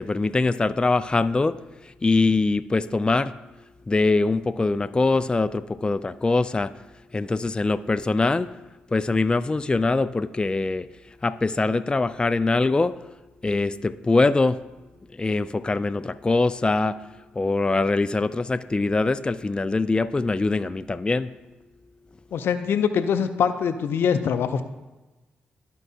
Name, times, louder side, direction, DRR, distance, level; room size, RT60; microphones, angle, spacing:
voice 1, 0.0-1.6 2.0-3.3 3.9-6.7 7.1-8.5 8.9-10.9 11.2-13.0 13.4-14.6 15.2-17.0 17.4-21.3, left 3 dB, 20° left, 12 dB, 0.4 m, -23 dB
voice 2, 22.3-24.6, left 7 dB, 70° left, 10 dB, 0.5 m, -23 dB
13.5 x 4.6 x 2.7 m, 1.1 s
supercardioid pair, 50°, 4 cm